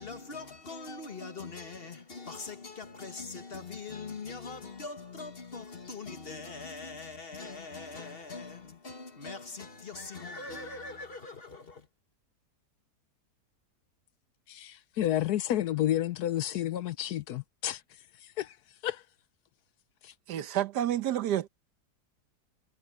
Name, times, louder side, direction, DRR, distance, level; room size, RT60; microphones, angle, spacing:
voice 1, 0.0-11.9, left 4 dB, 35° left, 1.7 m, -42 dB
voice 2, 14.5-17.8 18.2-18.6 18.8-19.0 20.0-20.1, left 12 dB, 75° left, 1.2 m, -30 dB
voice 3, 20.3-21.5, right 11 dB, 80° right, 1.5 m, -29 dB
omnidirectional pair, 1.8 m